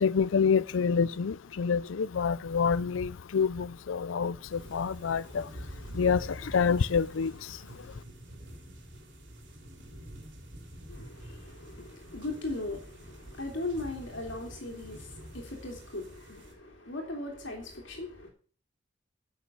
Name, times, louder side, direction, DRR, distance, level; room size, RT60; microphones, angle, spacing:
voice 1, 0.0-5.4 5.9-7.3, left 6 dB, 85° left, 0.5 m, -27 dB
sound 1, 4.5-16.5, right 1 dB, 70° right, 3.4 m, -47 dB
voice 2, 10.9-18.3, left 2 dB, 70° left, 2.9 m, -38 dB
10.5 x 6.7 x 6.9 m
head